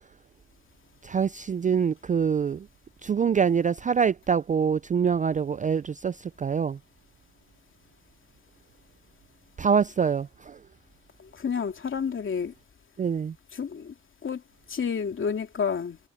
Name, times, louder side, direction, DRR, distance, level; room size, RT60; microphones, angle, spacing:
voice 1, 1.0-2.7 3.0-6.8 9.6-10.6 13.0-13.3, right 6 dB, 25° right, 0.4 m, -25 dB
voice 2, 11.2-12.5 13.5-13.9 14.2-14.4 14.7-16.0, left 6 dB, 40° left, 2.6 m, -30 dB
cardioid pair, 90°, 30 cm